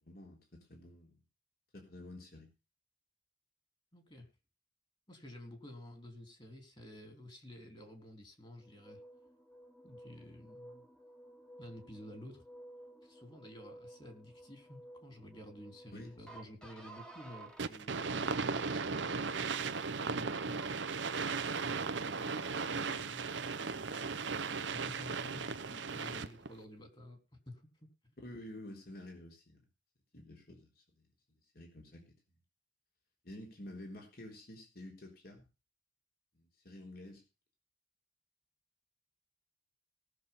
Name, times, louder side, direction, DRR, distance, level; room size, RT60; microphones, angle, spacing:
voice 1, 0.0-1.2 1.7-2.5 15.9-16.1 28.2-29.6 30.1-32.2 33.2-35.5 36.3-37.2, left 1 dB, 55° left, 1 dB, 3.8 m, -50 dB
voice 2, 3.9-4.3 5.1-9.0 9.8-10.9 11.6-12.4 13.0-19.3 20.0-20.8 21.4-23.2 23.6-27.2 27.5-27.6, left 1 dB, 25° left, 5 dB, 3.4 m, -51 dB
sound 1, 8.6-17.6 18.1-18.8 19.3-20.1 20.6-21.2 21.7-22.5, right 2 dB, 5° left, 1.6 m, -55 dB
sound 2, 17.6-26.5, right 4 dB, 85° right, 0.8 m, -36 dB
18.5 x 6.9 x 5.6 m, 0.31 s
head